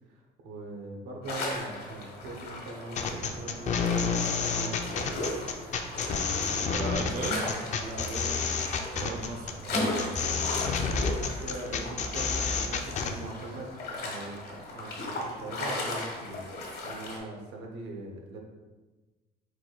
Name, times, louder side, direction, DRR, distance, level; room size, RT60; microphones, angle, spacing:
voice 1, 0.1-6.7 7.2-8.9 10.2-10.4 11.0-18.4, right 2 dB, 85° right, 1 dB, 0.9 m, -41 dB
sound 1, 1.2-17.2, left 2 dB, 65° left, 1.1 m, -37 dB
sound 2, 3.0-13.1, left 5 dB, 45° left, 0.5 m, -29 dB
voice 2, 6.7-7.4 8.9-10.4 10.8-10.9, right 3 dB, 50° right, 1 dB, 0.5 m, -36 dB
4.8 x 2.3 x 4.0 m, 1.2 s
cardioid pair, 110°, 17 cm